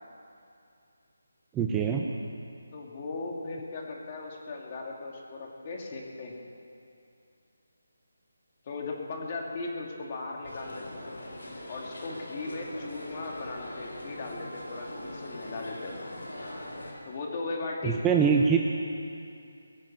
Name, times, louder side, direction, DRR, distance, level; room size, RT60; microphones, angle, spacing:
voice 1, 1.5-2.1 17.8-18.6, right 6 dB, 10° right, 1 dB, 0.6 m, -23 dB
voice 2, 2.7-6.4 8.6-11.0 11.7-16.0 17.0-18.0, left 3 dB, 30° left, -1 dB, 2.6 m, -37 dB
sound 1, 10.4-16.9, left 1 dB, 85° left, 4.4 m, -41 dB
22.5 x 7.5 x 7.5 m, 2.5 s
figure-of-eight pair, 165°, 0 cm